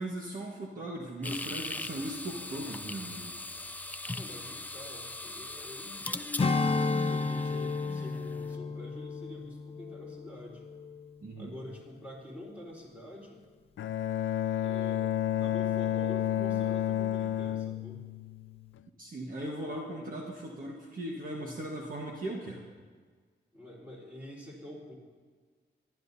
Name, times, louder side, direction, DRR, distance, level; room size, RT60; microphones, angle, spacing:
voice 1, 0.0-3.3 11.2-11.5 19.0-22.7, right 1 dB, 45° right, -1 dB, 1.5 m, -38 dB
sound 1, 1.2-8.5, left 2 dB, 10° left, 0.3 m, -40 dB
voice 2, 4.1-6.3 7.0-10.6 11.4-13.4 14.5-18.0 19.6-19.7 23.5-24.9, left 1 dB, 5° right, -4 dB, 4.1 m, -47 dB
Strum, 6.4-11.1 11.5-11.7, left 3 dB, 30° left, 0.7 m, -32 dB
Bowed string instrument, 13.8-18.8, left 11 dB, 90° left, 0.4 m, -31 dB
25.5 x 12.0 x 2.8 m, 1.5 s
wide cardioid pair, 150°, 19 cm